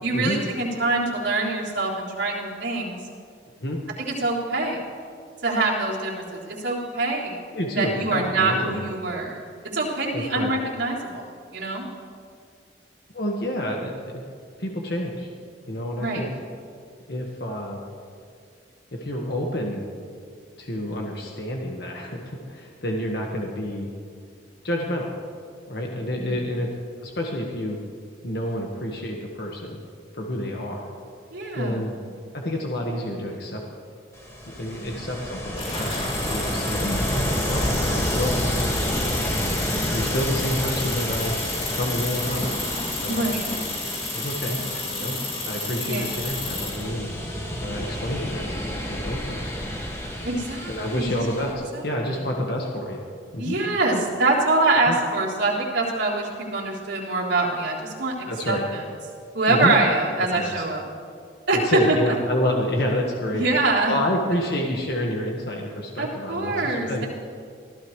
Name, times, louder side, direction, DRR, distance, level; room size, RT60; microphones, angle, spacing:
voice 1, 0.0-3.0 4.0-4.8 5.4-7.4 7.8-9.4 9.7-11.2 11.5-11.9 15.9-16.2 26.1-26.3 31.3-31.9 34.7-34.9 37.8-38.0 43.1-43.4 44.5-44.8 45.8-46.1 50.2-51.2 51.7-52.2 53.4-58.8 59.3-60.8 61.5-62.0 63.3-64.0 66.0-67.1, right 2 dB, 85° right, -5 dB, 3.6 m, -25 dB
voice 2, 7.5-8.7 10.1-10.5 13.1-14.2 14.6-15.3 15.7-16.3 17.1-17.8 18.9-19.8 20.6-23.9 24.6-25.1 25.7-26.7 27.0-27.8 28.2-29.8 30.1-30.9 31.5-31.9 32.3-33.6 34.5-37.8 38.1-38.3 39.4-39.5 39.9-41.3 41.7-42.5 42.9-43.2 44.1-44.6 44.9-45.2 45.5-47.1 47.6-49.4 50.7-53.0 53.3-53.6 54.9-55.0 58.3-58.6 59.5-59.8 60.3-60.6 61.5-63.5 63.9-67.0, left 1 dB, 60° left, -1 dB, 1.6 m, -28 dB
Ocean, 34.1-51.5, equal, 15° left, 1.9 m, -29 dB
sound 1, 35.6-46.9, left 2 dB, 30° left, 2.8 m, -32 dB
24.0 x 15.5 x 3.2 m, 2.2 s
head